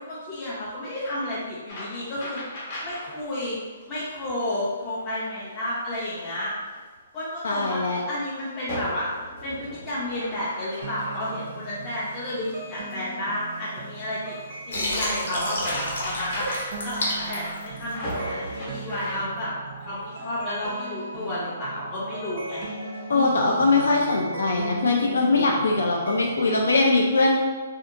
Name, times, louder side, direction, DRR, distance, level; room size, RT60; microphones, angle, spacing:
voice 1, 0.0-2.4 2.8-3.6 3.9-6.5 7.1-14.4 14.7-19.5 19.8-22.8 23.1-23.7, left 1 dB, 20° left, -9 dB, 0.4 m, -31 dB
sound 1, 1.7-3.2 3.5-3.8 4.5-5.6 6.2-6.3 6.6-6.8 7.2-8.4 8.7-19.2, equal, 40° left, 0.8 m, -38 dB
voice 2, 7.4-8.0 23.1-27.4, left 3 dB, 90° left, -1 dB, 0.3 m, -21 dB
sound 2, 10.8-26.5, right 3 dB, 50° right, 0.5 m, -38 dB
Water, 14.7-18.2, left 1 dB, 70° left, 0.8 m, -30 dB
2.6 x 2.2 x 2.5 m, 1.4 s
hypercardioid pair, 160°, 0 cm